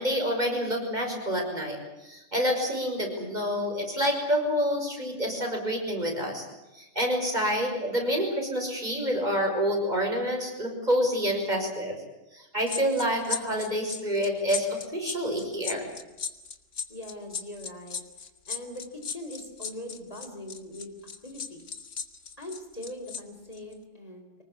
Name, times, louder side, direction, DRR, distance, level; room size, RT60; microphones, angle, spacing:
voice 1, 0.0-6.5 6.7-12.0 12.3-15.9, equal, 35° right, 2 dB, 6.1 m, -28 dB
sound 1, 12.7-23.2 23.5-23.7, left 6 dB, 90° left, 1.9 m, -36 dB
voice 2, 16.9-18.0 18.5-20.9 21.2-21.7 22.4-24.4, left 1 dB, 30° left, 4 dB, 4.1 m, -41 dB
24.5 x 20.0 x 8.5 m, 1.0 s
omnidirectional pair, 1.2 m